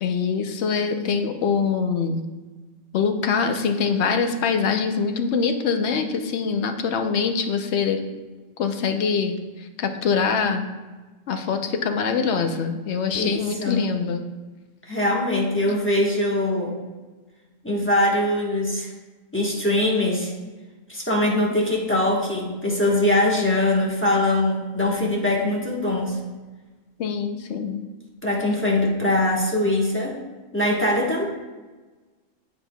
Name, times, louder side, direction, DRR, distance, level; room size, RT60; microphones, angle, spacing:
voice 1, 0.0-2.2 2.9-8.0 8.6-9.4 9.8-10.6 11.3-14.2 27.0-27.8, left 5 dB, 65° left, 6 dB, 0.8 m, -24 dB
voice 2, 13.1-13.8 14.9-16.8 17.6-18.9 19.3-20.3 20.9-26.2 28.2-30.2 30.5-31.2, left 1 dB, 10° left, -3 dB, 1.0 m, -22 dB
8.1 x 6.9 x 2.2 m, 1.3 s
omnidirectional pair, 1.4 m